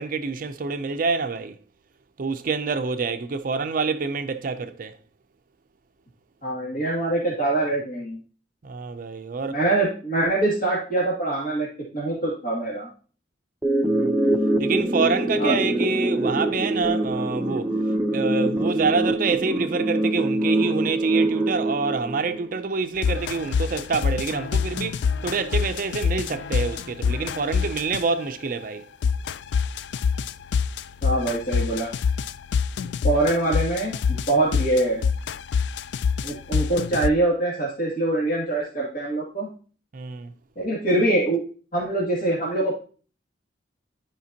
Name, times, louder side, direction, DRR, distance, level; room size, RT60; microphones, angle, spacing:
voice 1, 0.0-1.6 2.2-5.0 8.6-9.6 13.9-14.1 14.6-17.7 18.1-28.8 39.9-40.3, right 4 dB, 50° right, 0.5 m, -27 dB
voice 2, 6.4-8.2 9.5-11.7 11.9-12.9 15.4-15.6 31.0-31.9 33.0-35.0 36.2-39.5 40.6-41.5 41.7-42.7, right 2 dB, 50° left, 2.4 m, -24 dB
sound 1, 13.6-22.6, right 1 dB, 10° right, 0.7 m, -24 dB
sound 2, 23.0-28.3 29.0-37.1, left 6 dB, 70° left, 0.3 m, -25 dB
12.0 x 5.0 x 2.8 m
head